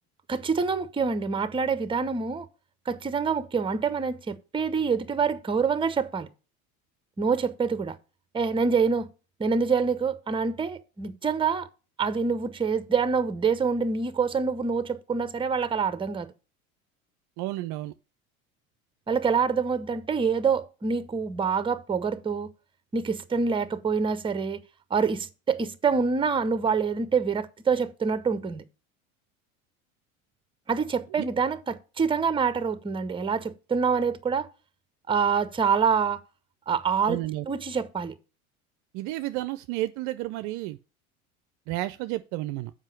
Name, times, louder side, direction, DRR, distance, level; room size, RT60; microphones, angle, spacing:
voice 1, 0.3-2.5 2.9-6.3 7.2-8.0 8.3-9.1 9.4-11.7 12.0-16.3 19.1-22.5 22.9-24.6 24.9-28.6 30.7-34.5 35.1-36.2 36.7-37.2 37.5-38.1, right 5 dB, 10° right, 0.7 m, -26 dB
voice 2, 17.4-17.9 37.1-37.5 38.9-40.8 41.7-42.7, right 17 dB, 45° right, 0.5 m, -31 dB
7.3 x 5.2 x 6.4 m
hypercardioid pair, 80°, 42 cm